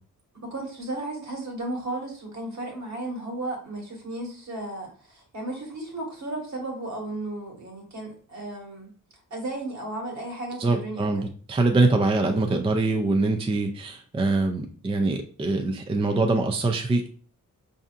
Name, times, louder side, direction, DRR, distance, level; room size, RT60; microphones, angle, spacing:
voice 1, 0.5-8.9 9.3-11.3, right 2 dB, 55° right, 0 dB, 1.4 m, -34 dB
voice 2, 10.6-17.1, right 2 dB, 20° right, 4 dB, 0.3 m, -24 dB
5.3 x 2.7 x 2.4 m, 0.43 s
wide cardioid pair, 140°, 33 cm